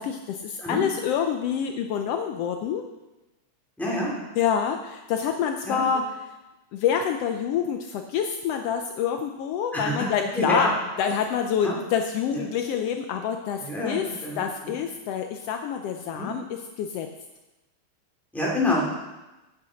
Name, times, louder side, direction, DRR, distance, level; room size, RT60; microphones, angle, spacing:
voice 1, 0.0-2.8 4.4-6.0 6.7-10.7 11.0-14.1 14.4-17.1, left 8 dB, 90° left, 5 dB, 1.3 m, -27 dB
voice 2, 3.8-4.1 5.6-5.8 9.7-10.1 10.3-10.7 11.6-11.7 12.3-12.4 13.6-14.0 14.2-14.7 16.1-16.3 18.3-18.9, left 1 dB, ahead, -4 dB, 2.1 m, -27 dB
8.5 x 7.3 x 6.3 m, 1.1 s
omnidirectional pair, 3.4 m